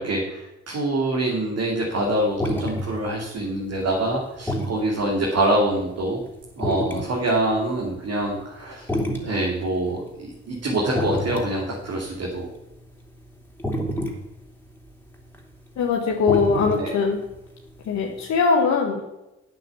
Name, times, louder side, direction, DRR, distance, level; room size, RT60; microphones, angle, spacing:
voice 1, 0.0-6.2 6.6-8.9 9.2-12.5 16.7-16.9, right 1 dB, 55° right, -2 dB, 2.9 m, -25 dB
sound 1, 1.9-7.9 8.3-18.4, equal, 5° left, 3.4 m, -30 dB
voice 2, 15.8-17.2 17.9-19.0, left 5 dB, 65° left, 0 dB, 1.6 m, -21 dB
9.2 x 7.7 x 7.2 m, 0.95 s
hypercardioid pair, 50°, 29 cm